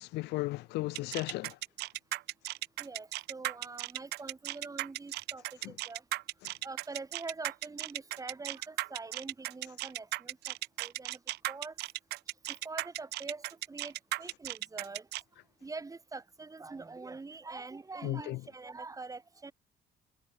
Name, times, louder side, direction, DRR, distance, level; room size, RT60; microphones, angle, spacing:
voice 1, 0.0-1.6 5.6-5.7 6.4-6.5 18.0-18.4, left 20 dB, 90° left, 3.4 m, -35 dB
sound 1, 0.9-15.2, right 18 dB, 80° right, 0.7 m, -36 dB
voice 2, 2.8-6.0 6.6-11.2 11.5-11.8 12.5-15.1 15.6-19.5, right 3 dB, 20° right, 3.8 m, -44 dB
cardioid pair, 110°, 17 cm